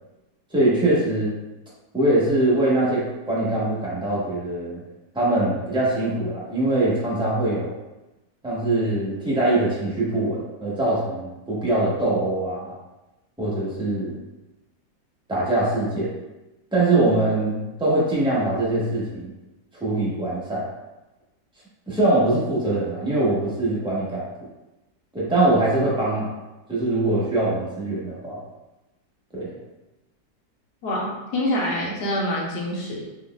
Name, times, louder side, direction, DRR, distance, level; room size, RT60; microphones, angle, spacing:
voice 1, 0.5-1.3 1.9-4.8 5.1-7.7 8.4-12.7 13.4-14.2 15.3-16.1 16.7-19.3 19.8-20.7 21.9-24.2 25.1-26.3 26.7-28.4 29.3-29.6, right 2 dB, 5° right, -8 dB, 0.4 m, -22 dB
voice 2, 30.8-33.1, left 1 dB, 65° left, -3 dB, 1.3 m, -26 dB
4.0 x 3.3 x 2.2 m, 1.0 s
omnidirectional pair, 2.0 m